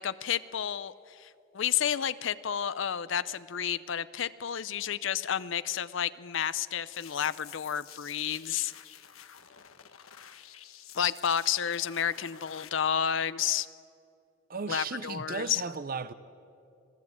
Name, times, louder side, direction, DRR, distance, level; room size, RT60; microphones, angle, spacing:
voice 1, 0.0-8.7 10.9-13.7 14.7-15.6, left 9 dB, 65° left, 0.5 m, -31 dB
sound 1, 6.9-12.7, left 10 dB, 85° left, 1.2 m, -50 dB
voice 2, 14.5-16.1, right 5 dB, 45° right, 0.7 m, -35 dB
26.5 x 17.0 x 8.6 m
head